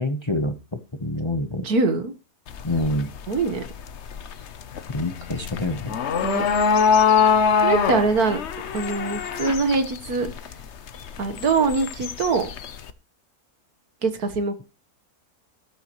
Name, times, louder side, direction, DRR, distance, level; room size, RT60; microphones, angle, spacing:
voice 1, 0.0-1.7 2.6-3.1 4.9-6.0, left 1 dB, 20° left, 7 dB, 1.0 m, -27 dB
voice 2, 1.6-2.1 3.3-3.6 6.2-6.5 7.6-8.4 8.7-10.3 11.2-12.5 14.0-14.6, right 4 dB, 75° right, 9 dB, 1.9 m, -23 dB
sound 1, 2.5-12.9, left 6 dB, 55° left, 1.0 m, -24 dB
14.0 x 12.5 x 3.1 m, 0.30 s
omnidirectional pair, 1.6 m